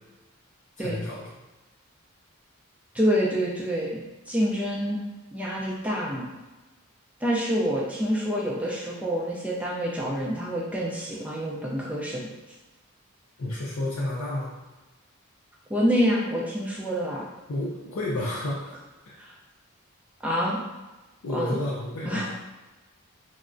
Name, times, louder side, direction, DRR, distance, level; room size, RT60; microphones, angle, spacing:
voice 1, 0.8-1.2 13.4-14.5 17.5-18.7 19.1-19.2 21.2-22.4, left 1 dB, 70° left, -4 dB, 0.5 m, -31 dB
voice 2, 2.9-5.0 5.3-6.3 7.2-12.3 15.7-17.3 19.2-19.3 20.2-20.6 21.3-21.6 22.0-22.3, equal, 5° right, -4 dB, 0.4 m, -27 dB
3.4 x 2.0 x 2.5 m, 1.1 s
head